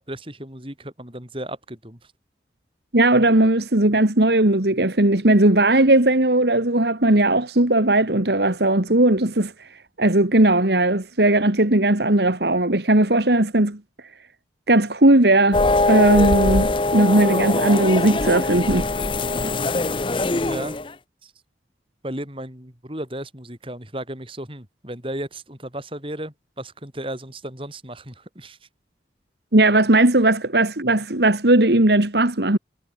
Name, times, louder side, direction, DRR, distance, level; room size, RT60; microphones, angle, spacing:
voice 1, 0.0-2.0 20.5-20.8 21.2-21.3 22.0-28.6, right 1 dB, 30° right, 6.1 m, -34 dB
voice 2, 2.9-9.5 10.0-13.8 14.7-15.6 15.9-18.9 29.5-32.6, right 1 dB, 70° right, 2.2 m, -17 dB
sound 1, 15.5-20.9, left 2 dB, 30° left, 0.7 m, -22 dB
head